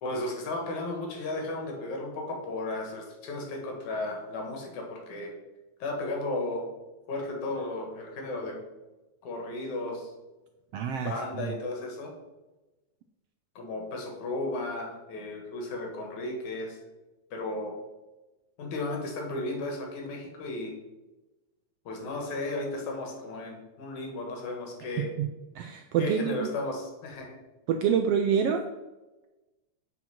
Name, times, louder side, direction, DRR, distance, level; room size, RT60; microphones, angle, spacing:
voice 1, 0.0-5.3 5.8-6.7 7.1-8.6 9.2-10.1 11.0-12.1 13.6-16.8 17.3-17.7 18.6-20.7 21.9-25.1 26.0-27.4, left 2 dB, 80° left, 1 dB, 3.2 m, -34 dB
voice 2, 10.7-11.5 25.2-25.3 25.5-26.5 27.7-28.6, right 7 dB, 80° right, 7 dB, 1.4 m, -27 dB
8.0 x 6.0 x 5.8 m, 1.1 s
omnidirectional pair, 3.3 m